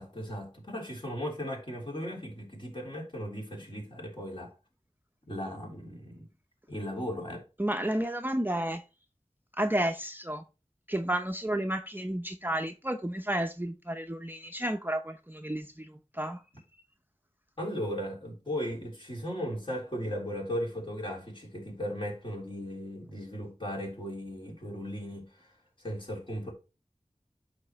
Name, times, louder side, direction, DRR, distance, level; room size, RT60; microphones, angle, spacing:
voice 1, 0.0-4.5 5.3-6.3 6.7-7.4 17.6-25.5 25.8-26.5, equal, 45° left, 3.6 m, -37 dB
voice 2, 7.6-8.8 9.6-10.4 10.9-16.4, right 1 dB, 15° right, 0.7 m, -31 dB
11.5 x 4.3 x 3.1 m
wide cardioid pair, 45°, 12 cm